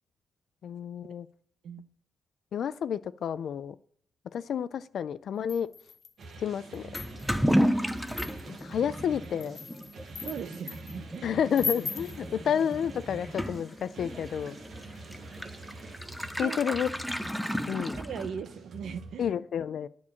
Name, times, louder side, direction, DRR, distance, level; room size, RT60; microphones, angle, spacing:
voice 1, 0.6-1.3 2.5-3.8 4.3-5.7 6.4-6.9 8.5-9.6 11.2-14.6 16.4-16.9 17.7-18.0 19.2-19.9, left 8 dB, 60° left, 18 dB, 0.4 m, -30 dB
sound 1, 5.5-6.2 6.7-7.4 8.1-8.6 9.2-11.0 11.5-12.2, left 4 dB, 40° left, 0.9 m, -37 dB
sound 2, 6.2-19.3, right 3 dB, 50° right, 1.6 m, -46 dB
Toilet flush / Liquid, 6.9-18.6, equal, ahead, 0.5 m, -33 dB
voice 2, 10.2-11.4 16.2-16.6 17.7-19.3, right 7 dB, 75° right, 12 dB, 0.7 m, -39 dB
9.8 x 4.6 x 7.0 m, 0.63 s
wide cardioid pair, 175°, 0 cm